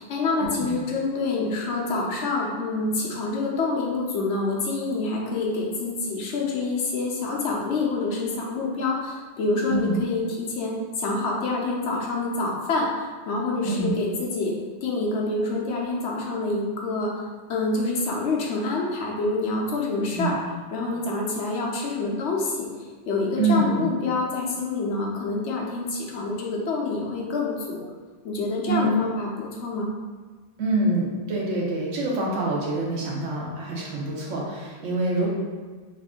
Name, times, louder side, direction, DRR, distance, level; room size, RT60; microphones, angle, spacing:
voice 1, 0.0-14.5 14.8-20.4 20.7-27.8 28.2-29.9, left 3 dB, 70° left, -2 dB, 1.0 m, -27 dB
voice 2, 23.4-23.9 28.7-28.9 30.6-35.3, right 2 dB, 90° right, -3 dB, 1.2 m, -26 dB
3.1 x 2.5 x 3.5 m, 1.5 s
omnidirectional pair, 1.2 m